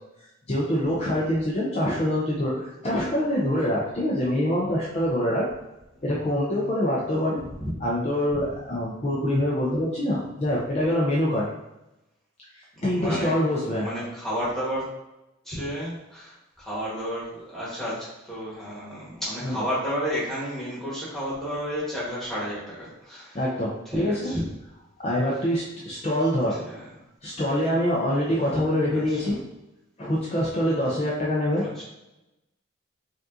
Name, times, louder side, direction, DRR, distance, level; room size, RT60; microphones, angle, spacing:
voice 1, 0.5-5.5 6.0-7.4 7.8-11.5 12.5-13.9 19.4-19.6 23.3-24.3 25.0-26.6 27.2-29.4 30.0-31.7, equal, 30° left, -4 dB, 0.5 m, -25 dB
voice 2, 12.7-13.3 13.7-14.8 15.4-23.4 23.8-24.4 26.5-26.8 28.9-29.4 31.6-31.8, equal, ahead, -9 dB, 1.3 m, -32 dB
5.1 x 2.4 x 2.6 m, 0.93 s
head